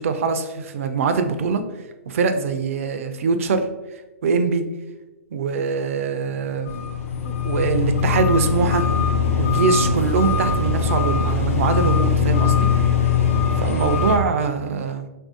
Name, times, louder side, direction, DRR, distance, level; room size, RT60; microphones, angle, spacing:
voice 1, 0.0-1.6 2.1-3.7 4.2-4.6 5.3-6.8 7.2-8.8 9.4-12.9 13.6-15.1, right 5 dB, 65° right, 8 dB, 0.4 m, -23 dB
sound 1, 6.7-14.2, left 5 dB, 65° left, 0.5 m, -21 dB
3.2 x 2.6 x 2.5 m, 1.1 s
hypercardioid pair, 115°, 8 cm